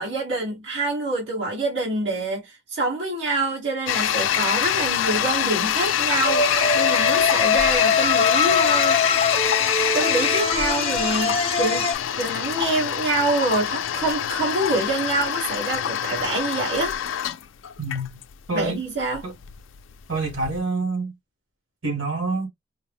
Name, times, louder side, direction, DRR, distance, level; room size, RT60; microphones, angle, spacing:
voice 1, 0.0-9.0 9.9-16.9 18.5-19.2, right 2 dB, 65° right, 1.4 m, -26 dB
Toilet flush, 3.9-20.6, left 10 dB, 80° left, 0.4 m, -25 dB
sound 1, 6.2-11.9, left 4 dB, 30° left, 0.9 m, -22 dB
voice 2, 17.8-18.2 18.5-18.8 19.2-19.3 20.1-21.1 21.8-22.5, right 3 dB, 85° right, 1.7 m, -26 dB
4.5 x 2.0 x 3.4 m
head